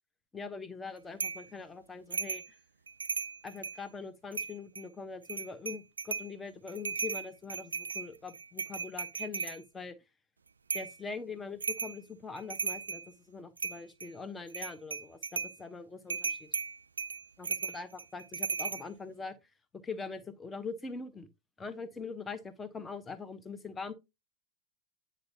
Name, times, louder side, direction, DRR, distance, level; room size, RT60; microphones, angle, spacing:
voice 1, 0.3-2.4 3.4-9.9 10.7-13.0 13.3-16.5 17.4-19.3 19.8-21.3 21.6-23.9, left 4 dB, 15° left, 1.0 m, -42 dB
sound 1, 1.2-1.5 2.1-2.5 2.9-3.8 4.3-4.8 5.2-6.3 6.7-9.6 10.7-11.0 11.6-12.0 12.4-13.1 13.6-14.1 14.5-15.6 16.1-18.8, right 5 dB, 75° right, 0.3 m, -36 dB
9.2 x 5.2 x 2.8 m
figure-of-eight pair, 90°, 0 cm